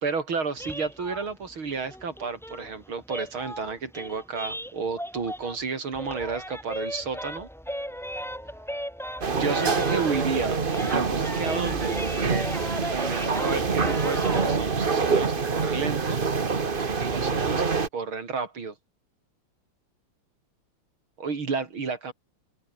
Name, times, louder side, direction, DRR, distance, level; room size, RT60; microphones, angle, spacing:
voice 1, 0.0-7.5 9.3-10.6 10.9-12.6 12.9-16.3 17.1-18.7 21.2-22.1, right 4 dB, 75° right, 4.2 m, -32 dB
Children's Toy Scatting Audio, 0.6-5.7 5.9-10.4 10.7-14.6, equal, ahead, 5.0 m, -37 dB
sound 1, 9.2-17.9, right 5 dB, 30° right, 1.3 m, -26 dB
omnidirectional pair, 2.3 m